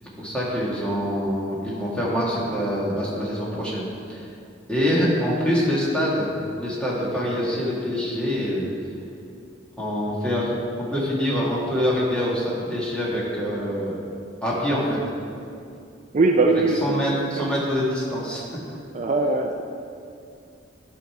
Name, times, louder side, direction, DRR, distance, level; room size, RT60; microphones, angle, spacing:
voice 1, 0.0-4.3 4.7-6.3 6.6-8.7 9.8-14.0 14.4-15.0 16.5-18.6, equal, 5° left, -6 dB, 1.9 m, -25 dB
voice 2, 16.1-17.0 17.4-17.5 18.9-19.6, right 3 dB, 40° right, 2 dB, 0.4 m, -21 dB
11.0 x 5.5 x 4.7 m, 2.5 s
head